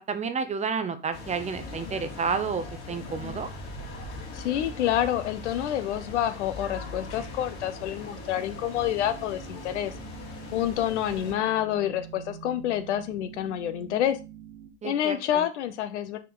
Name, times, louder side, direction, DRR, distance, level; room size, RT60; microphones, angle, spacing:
voice 1, 0.0-3.5 14.8-15.4, right 5 dB, 20° right, 11 dB, 0.6 m, -30 dB
sound 1, 1.1-11.3, left 3 dB, 40° left, 2.7 m, -40 dB
voice 2, 4.3-9.9 10.5-14.2 14.8-16.2, left 11 dB, 80° left, 11 dB, 1.0 m, -28 dB
sound 2, 6.8-14.7, right 9 dB, 85° right, 1.4 m, -47 dB
5.9 x 4.5 x 3.9 m, 0.29 s
supercardioid pair, 115°, 34 cm